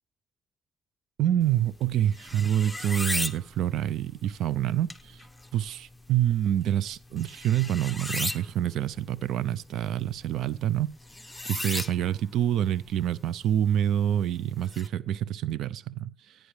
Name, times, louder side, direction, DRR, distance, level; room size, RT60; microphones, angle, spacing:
voice 1, 1.2-5.2 5.5-10.9 11.5-16.4, right 11 dB, 80° right, 0.5 m, -27 dB
sound 1, 1.4-14.9, left 1 dB, 5° left, 1.1 m, -38 dB
16.0 x 9.2 x 3.3 m
cardioid pair, 85°, 0 cm